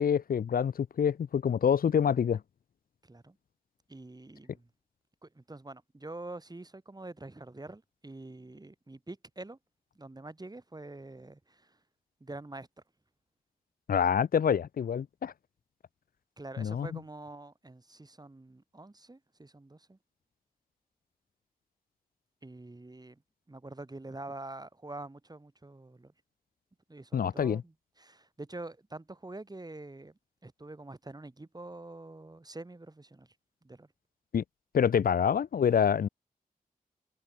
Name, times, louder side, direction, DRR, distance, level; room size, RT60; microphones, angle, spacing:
voice 1, 0.0-2.4 13.9-15.3 16.6-16.9 27.1-27.6 34.3-34.4 34.7-36.1, left 7 dB, 75° left, 0.9 m, -26 dB
voice 2, 3.0-3.4 3.9-4.7 5.2-9.6 9.9-11.8 12.2-12.7 16.4-20.0 22.4-23.2 23.5-26.1 26.9-33.3 33.6-33.9, right 2 dB, 25° right, 5.0 m, -46 dB
cardioid pair, 55°, 15 cm